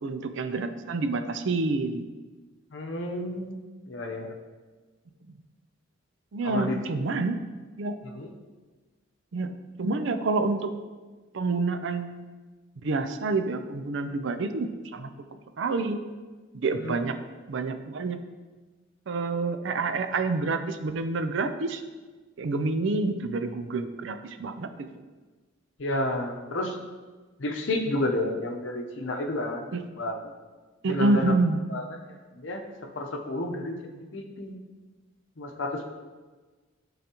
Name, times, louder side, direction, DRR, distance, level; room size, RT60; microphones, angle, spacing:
voice 1, 0.0-2.0 5.3-5.4 6.3-7.4 7.8-8.0 9.3-10.7 11.3-12.2 12.8-15.1 15.6-16.0 16.5-17.2 17.5-18.2 19.1-21.8 22.4-24.9 29.7-29.8 30.8-31.6, right 3 dB, 65° right, 9 dB, 0.4 m, -28 dB
voice 2, 2.7-3.6 3.9-4.3 6.4-6.8 8.1-8.3 16.8-17.0 25.8-26.8 27.4-29.7 30.0-30.1 30.8-31.3 31.7-31.8 32.4-32.6 33.0-34.6 35.4-35.8, left 1 dB, 65° left, 3 dB, 0.8 m, -30 dB
10.0 x 3.9 x 2.9 m, 1.3 s
head